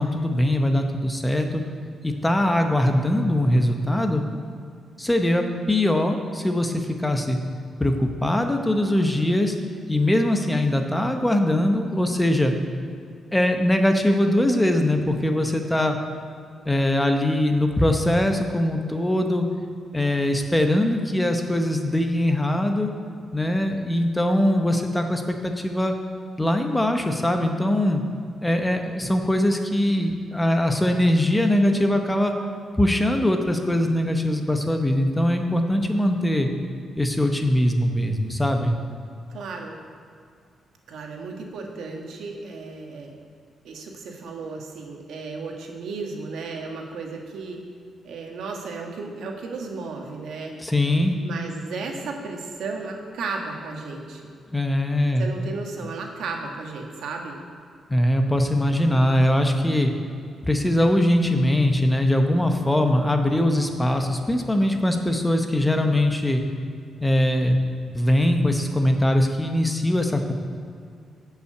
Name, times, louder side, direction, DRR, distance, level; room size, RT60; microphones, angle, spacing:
voice 1, 0.0-1.6 2.0-4.2 5.0-7.4 7.8-9.6 9.9-12.5 13.3-16.0 16.7-19.5 19.9-22.9 23.3-25.9 26.4-28.0 28.4-32.3 32.8-36.5 37.0-38.8 50.6-51.2 54.5-55.3 57.9-59.9 60.4-66.4 67.0-67.6 67.9-70.3, left 1 dB, 10° left, 5 dB, 0.8 m, -21 dB
voice 2, 39.3-39.8 40.9-43.1 43.6-47.6 48.0-50.6 51.2-54.3 55.2-57.4, right 4 dB, 80° right, 1 dB, 1.6 m, -34 dB
11.0 x 5.8 x 7.8 m, 2.3 s
cardioid pair, 135°, 0 cm